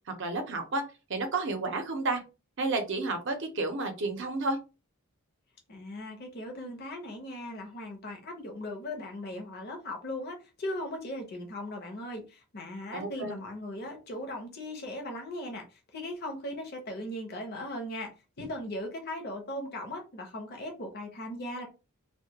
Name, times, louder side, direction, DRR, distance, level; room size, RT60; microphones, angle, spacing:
voice 1, 0.2-0.8 1.1-2.2 2.6-4.6 12.9-13.3, right 3 dB, 55° right, 0.6 m, -31 dB
voice 2, 5.7-15.6 15.9-18.1 18.4-21.7, left 1 dB, 45° left, 0.6 m, -38 dB
2.2 x 2.1 x 2.8 m
head